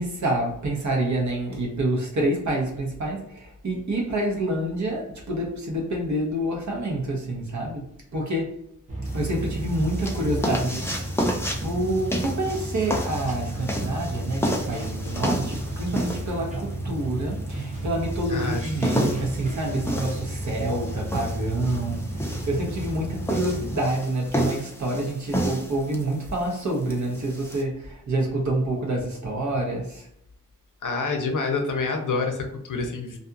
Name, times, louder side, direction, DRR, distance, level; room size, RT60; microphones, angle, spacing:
voice 1, 0.0-7.9 8.1-8.5 9.1-11.1 11.6-30.0, right 1 dB, 60° right, 0.9 m, -27 dB
sound 1, 8.9-23.8, right 1 dB, 25° right, 0.7 m, -32 dB
sound 2, 9.1-27.6, equal, 10° left, 0.4 m, -31 dB
voice 2, 18.3-18.9 30.8-33.2, left 4 dB, 65° left, 0.6 m, -27 dB
2.6 x 2.3 x 2.6 m
wide cardioid pair, 120°, 33 cm